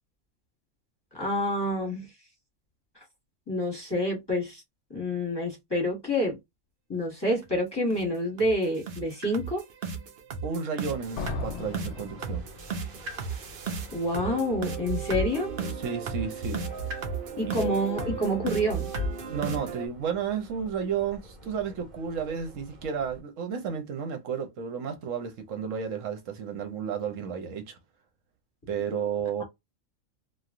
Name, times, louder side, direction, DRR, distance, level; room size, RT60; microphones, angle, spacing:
voice 1, 1.1-2.1 3.5-4.6 4.9-6.4 6.9-9.6 13.9-15.5 17.4-18.9, equal, 20° left, 1.3 m, -28 dB
sound 1, 7.4-7.5 7.9-8.1 8.4-8.5 8.9-19.9, right 4 dB, 50° right, 0.7 m, -34 dB
voice 2, 10.4-12.4 15.8-16.6 19.3-27.8 28.7-29.4, right 7 dB, 75° right, 1.1 m, -32 dB
Subway metro underground, 10.8-23.2, left 5 dB, 35° right, 1.2 m, -45 dB
sound 2, 11.2-13.0, left 4 dB, 65° left, 0.8 m, -37 dB
3.1 x 2.4 x 2.5 m
omnidirectional pair, 1.4 m